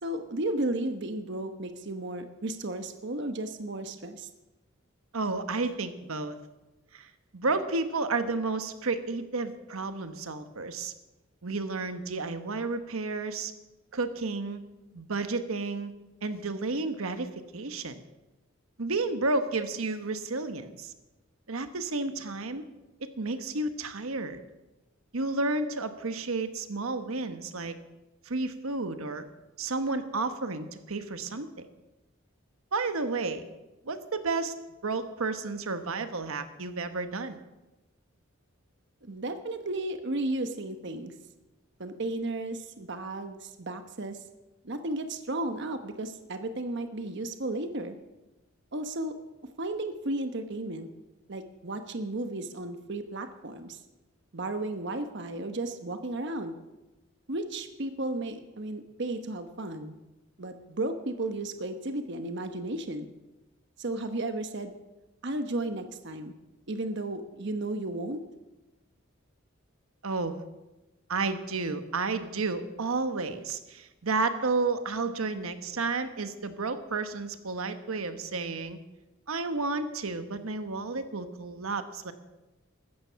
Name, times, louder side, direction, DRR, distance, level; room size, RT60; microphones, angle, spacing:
voice 1, 0.0-4.3 39.0-41.1 41.8-44.2 44.6-48.0 48.7-49.1 49.6-50.9 51.3-53.8 54.3-56.5 57.3-60.0 60.4-63.1 63.8-64.7 65.2-66.3 66.7-68.2, right 2 dB, 55° right, 8 dB, 1.1 m, -34 dB
voice 2, 5.1-6.4 6.9-10.9 11.4-13.5 13.9-14.6 14.9-15.9 16.2-18.0 18.8-20.9 21.5-22.6 23.2-24.4 25.1-27.7 28.2-29.2 29.6-31.5 32.7-33.5 33.8-34.5 34.8-37.4 70.0-70.4 71.1-78.8 79.3-82.1, right 3 dB, 90° right, 9 dB, 1.2 m, -31 dB
15.5 x 13.0 x 5.8 m, 1.0 s
head